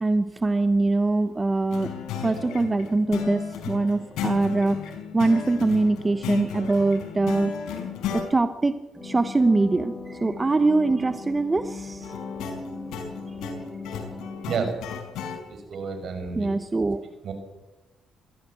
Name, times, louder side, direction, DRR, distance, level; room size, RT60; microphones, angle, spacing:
voice 1, 0.0-1.9 2.2-7.5 8.1-8.8 9.0-12.1 16.3-17.0, right 3 dB, 20° right, 11 dB, 1.0 m, -23 dB
sound 1, 1.7-8.3 12.0-15.4, left 7 dB, 90° left, 4.9 m, -34 dB
sound 2, 8.9-14.9, left 3 dB, 10° left, 7.5 m, -38 dB
voice 2, 14.5-14.8 15.5-16.6 17.2-17.3, right 5 dB, 60° right, 6 dB, 5.9 m, -30 dB
22.5 x 15.5 x 7.9 m, 1.0 s
cardioid pair, 90°, 0 cm